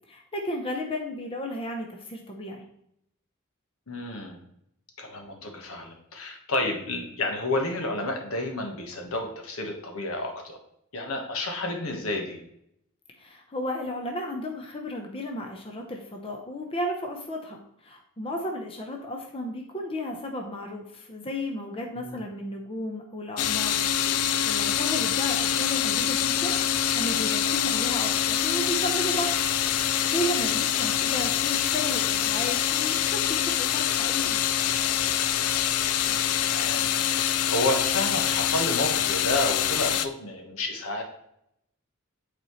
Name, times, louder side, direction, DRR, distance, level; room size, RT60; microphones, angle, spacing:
voice 1, 0.1-2.6 13.2-26.6 26.9-29.4 29.7-34.4, equal, 25° left, 1 dB, 0.7 m, -34 dB
voice 2, 3.9-4.4 5.0-10.6 10.9-12.4 22.0-22.2 27.6-27.7 36.1-36.2 36.5-41.0, left 1 dB, 70° left, 2 dB, 1.2 m, -30 dB
sound 1, 23.4-40.1, left 10 dB, 90° left, 0.4 m, -25 dB
8.4 x 4.2 x 3.1 m, 0.75 s
head